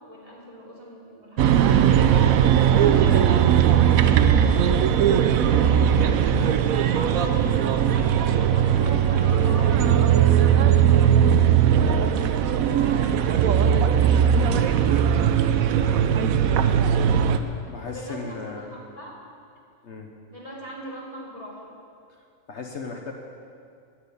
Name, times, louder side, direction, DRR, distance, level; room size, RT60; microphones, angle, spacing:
voice 1, 0.0-2.0 6.1-7.5 7.8-9.7 10.4-14.7 15.4-16.0 16.5-19.1 20.3-21.7, equal, 25° right, -5 dB, 3.1 m, -41 dB
sound 1, 1.4-17.4, right 9 dB, 80° right, 1.1 m, -19 dB
voice 2, 17.7-18.7 19.8-20.1 22.5-23.1, left 4 dB, 55° left, 1 dB, 1.2 m, -36 dB
10.5 x 9.6 x 8.3 m, 2.4 s
omnidirectional pair, 1.4 m